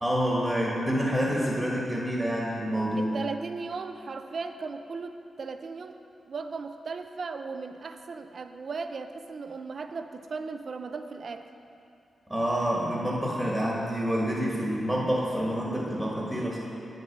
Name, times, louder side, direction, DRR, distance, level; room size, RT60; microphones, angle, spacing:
voice 1, 0.0-3.1 12.3-16.6, equal, 10° right, -4 dB, 1.4 m, -27 dB
voice 2, 3.0-6.0 6.3-11.5, right 4 dB, 50° right, 8 dB, 0.5 m, -37 dB
8.6 x 6.7 x 6.0 m, 2.6 s
wide cardioid pair, 120°, 0 cm